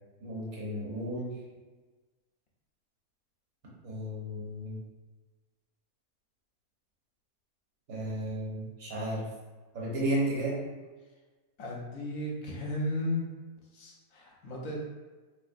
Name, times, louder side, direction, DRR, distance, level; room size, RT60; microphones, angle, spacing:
voice 1, 0.2-1.3 3.8-4.8 7.9-9.2 9.7-10.6, right 1 dB, 65° right, -5 dB, 1.4 m, -33 dB
voice 2, 11.6-13.2 13.7-14.8, left 1 dB, 65° left, -2 dB, 1.1 m, -34 dB
3.6 x 2.9 x 2.5 m, 1.3 s
omnidirectional pair, 1.6 m